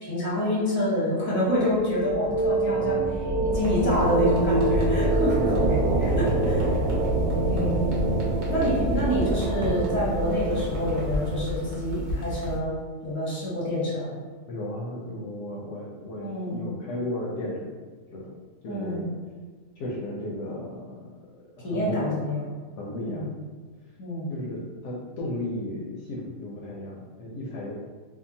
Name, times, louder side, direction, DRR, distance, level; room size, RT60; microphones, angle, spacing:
voice 1, 0.0-5.5 6.2-6.6 7.5-7.8 8.5-14.1 16.2-16.6 18.7-19.0 21.6-22.4 23.0-23.3 24.0-24.3, left 1 dB, 10° left, -7 dB, 0.6 m, -27 dB
sound 1, 1.5-12.0, right 2 dB, 80° right, 1.1 m, -26 dB
sound 2, 3.5-12.6, left 1 dB, 60° right, 1.0 m, -34 dB
voice 2, 5.3-6.7 14.5-17.7 18.1-18.3 18.6-19.2 19.8-21.2 21.7-22.1 22.8-23.3 24.3-27.7, left 1 dB, 70° left, -4 dB, 0.8 m, -34 dB
2.7 x 2.3 x 2.6 m, 1.5 s
omnidirectional pair, 1.4 m